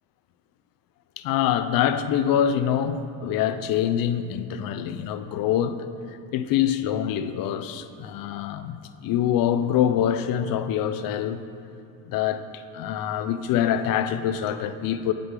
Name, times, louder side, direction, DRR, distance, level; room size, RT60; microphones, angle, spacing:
voice 1, 1.2-5.8 6.3-11.4 12.1-15.1, left 9 dB, 65° left, 0.5 m, -25 dB
9.6 x 5.0 x 3.7 m
cardioid pair, 120°, 37 cm